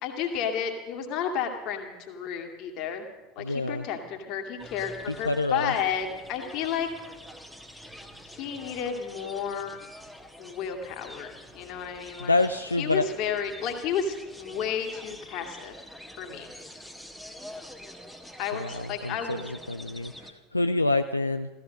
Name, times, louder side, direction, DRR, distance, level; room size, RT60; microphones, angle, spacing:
voice 1, 0.0-3.1 3.4-6.9 8.2-9.8 10.4-12.4 12.8-15.7 16.2-16.5 18.4-19.4, left 7 dB, 45° left, 3 dB, 2.3 m, -32 dB
voice 2, 3.4-3.9 5.1-5.7 12.2-13.1 18.5-21.5, left 2 dB, 85° left, 8 dB, 0.4 m, -27 dB
sound 1, 4.6-20.3, equal, ahead, 1.5 m, -46 dB
15.5 x 14.0 x 6.5 m, 1.2 s
figure-of-eight pair, 75°, 0 cm